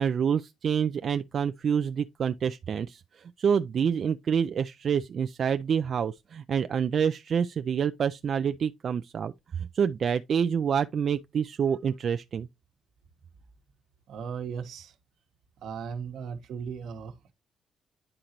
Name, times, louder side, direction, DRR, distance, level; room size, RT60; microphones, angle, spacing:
voice 1, 0.0-12.5, right 7 dB, 55° right, 0.3 m, -27 dB
voice 2, 14.1-14.9 15.6-17.3, right 6 dB, 75° right, 1.1 m, -37 dB
10.0 x 3.9 x 2.9 m
cardioid pair, 90°, 0 cm